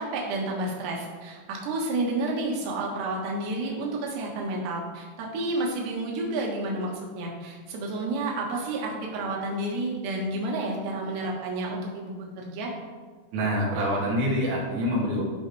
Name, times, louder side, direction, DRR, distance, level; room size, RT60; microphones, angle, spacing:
voice 1, 0.0-12.7, right 2 dB, 65° right, -1 dB, 3.4 m, -30 dB
voice 2, 13.3-15.2, equal, 85° right, -6 dB, 5.0 m, -26 dB
15.5 x 5.5 x 3.4 m, 1.4 s
omnidirectional pair, 5.6 m